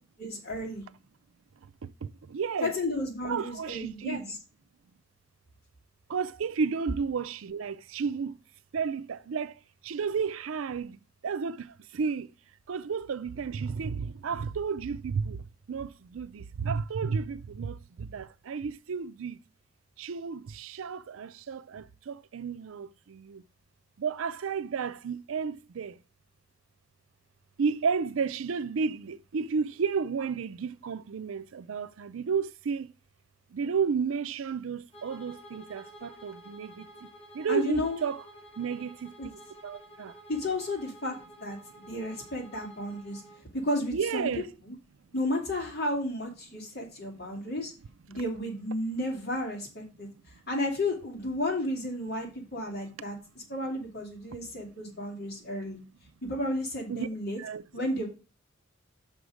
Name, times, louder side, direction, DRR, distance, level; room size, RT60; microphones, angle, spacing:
voice 1, 0.2-0.8 2.6-4.4 37.5-38.0 39.2-39.3 40.3-43.2 43.5-44.3 44.7-44.8 45.1-47.7 48.1-50.1 50.5-55.8 56.2-57.4 57.7-58.1, left 1 dB, 55° left, 2.8 m, -33 dB
voice 2, 1.8-2.7 3.2-4.4 6.1-8.3 8.7-12.3 12.7-19.4 20.0-23.4 24.0-26.0 27.6-32.9 33.5-37.1 37.3-38.2 38.6-39.1 39.6-40.2 43.9-44.5 54.3-54.4 56.9-57.1 57.4-57.6, right 5 dB, 85° right, 0.4 m, -32 dB
Bowed string instrument, 34.9-43.4, right 1 dB, 30° left, 1.7 m, -51 dB
6.0 x 4.9 x 6.3 m
head